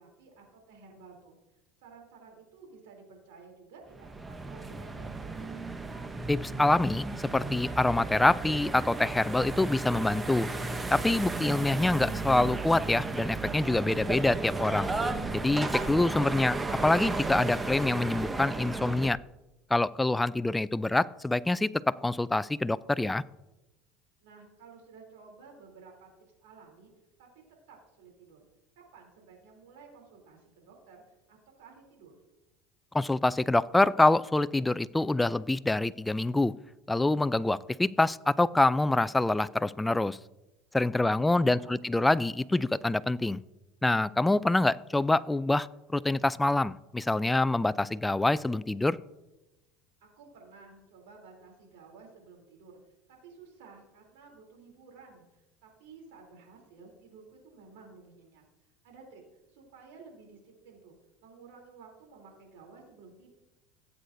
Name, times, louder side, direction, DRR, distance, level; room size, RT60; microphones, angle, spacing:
voice 1, 0.0-1.4 1.8-5.6 24.2-26.1 26.4-26.9 27.2-27.3 27.7-28.5 28.9-31.0 31.3-32.2 41.0-41.8 50.0-52.8 53.1-58.4 58.8-59.2 59.5-61.0 61.2-63.3, right 4 dB, 85° right, 1 dB, 3.1 m, -53 dB
sound 1, 3.9-19.1, right 3 dB, 15° right, 0.7 m, -34 dB
voice 2, 6.3-7.1 7.3-10.5 10.9-14.9 15.3-16.6 16.8-19.2 19.7-23.2 32.9-36.5 36.9-40.2 40.7-43.4 43.8-45.7 45.9-49.0, left 2 dB, 10° left, 16 dB, 0.3 m, -26 dB
15.5 x 8.2 x 2.6 m, 0.98 s
supercardioid pair, 105°, 0 cm